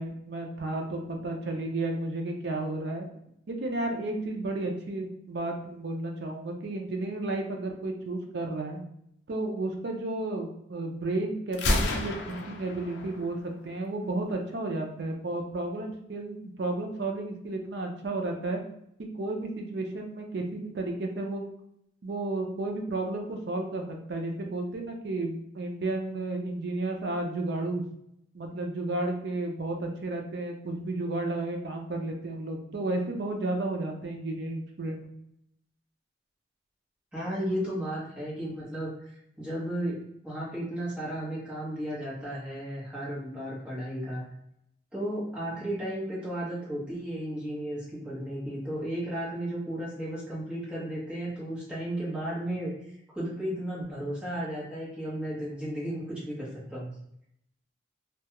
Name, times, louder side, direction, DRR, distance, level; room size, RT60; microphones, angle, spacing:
voice 1, 0.0-3.1 3.5-8.8 9.3-18.6 19.2-21.4 22.0-27.8 28.3-35.0, right 2 dB, 60° right, 2 dB, 0.4 m, -32 dB
Gunshot gunfire, 11.5-13.5, left 1 dB, 70° left, 0.4 m, -30 dB
voice 2, 37.1-44.2 44.9-56.9, right 1 dB, 5° right, -8 dB, 0.9 m, -34 dB
2.2 x 2.2 x 2.9 m, 0.76 s
head